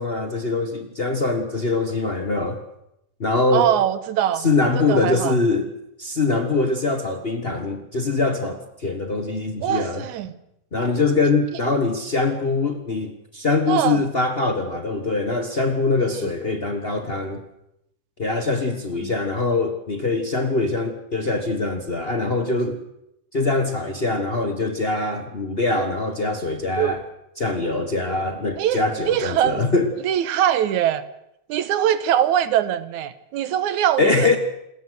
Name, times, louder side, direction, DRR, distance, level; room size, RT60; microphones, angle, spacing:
voice 1, 0.0-2.6 3.2-3.7 4.4-5.7 6.0-10.0 10.7-17.4 18.2-22.8 23.3-27.0 27.4-29.9 34.0-34.4, left 3 dB, 90° left, 6 dB, 0.5 m, -23 dB
voice 2, 3.5-4.5 4.8-5.4 9.6-10.3 13.7-14.0 16.2-16.3 19.0-19.1 26.8-27.0 28.6-29.6 30.0-31.0 31.5-34.4, right 10 dB, 75° right, 14 dB, 2.4 m, -22 dB
27.5 x 14.0 x 8.2 m, 0.81 s
omnidirectional pair, 3.7 m